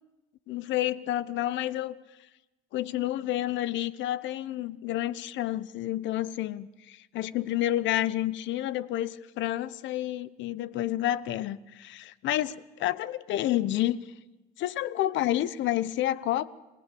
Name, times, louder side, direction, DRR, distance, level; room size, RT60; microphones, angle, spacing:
voice 1, 0.5-2.0 2.7-14.0 14.6-16.5, left 13 dB, 65° left, 19 dB, 1.0 m, -29 dB
27.0 x 18.5 x 8.5 m, 1.1 s
supercardioid pair, 90°, 20 cm